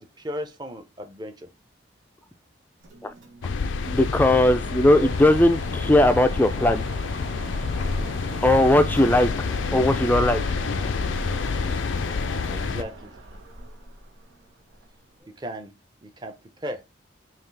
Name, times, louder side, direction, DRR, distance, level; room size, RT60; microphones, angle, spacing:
voice 1, 0.0-1.5 4.9-5.1 12.5-13.1 15.2-15.7 16.0-16.8, equal, 20° right, 0.7 m, -36 dB
Mechanisms, 2.8-15.2, right 3 dB, 85° right, 1.2 m, -41 dB
sound 1, 3.4-12.8, left 4 dB, 75° left, 0.4 m, -28 dB
voice 2, 3.9-6.9 8.4-9.3 9.7-10.4, left 1 dB, 10° left, 0.3 m, -18 dB
5.6 x 2.4 x 3.2 m
head